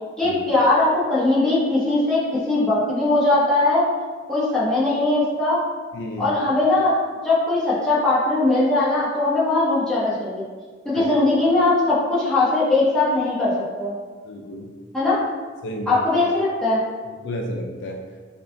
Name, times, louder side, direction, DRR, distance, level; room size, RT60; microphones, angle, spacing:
voice 1, 0.2-3.9 4.3-5.6 6.2-6.9 7.2-10.4 10.8-13.5 13.8-14.0 14.9-15.2 15.9-16.8, left 2 dB, 5° left, -10 dB, 1.1 m, -20 dB
voice 2, 5.9-6.4 11.0-11.1 14.2-14.7 15.6-16.0 17.2-18.0, equal, 65° left, 1 dB, 0.4 m, -31 dB
5.2 x 2.4 x 2.5 m, 1.5 s
head